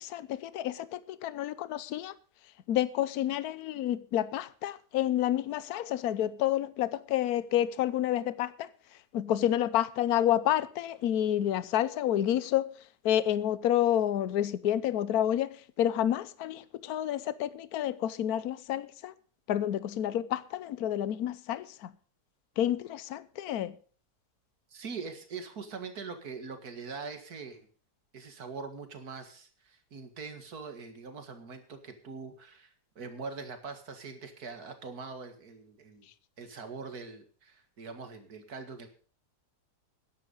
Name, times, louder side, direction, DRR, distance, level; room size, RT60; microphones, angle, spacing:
voice 1, 0.0-2.1 2.7-8.7 9.1-12.7 13.0-19.1 19.5-21.9 22.6-23.7, left 11 dB, 70° left, 1.2 m, -29 dB
voice 2, 24.7-27.7 28.1-36.1 36.4-38.9, right 4 dB, 70° right, 2.4 m, -43 dB
13.0 x 10.5 x 5.4 m
omnidirectional pair, 1.7 m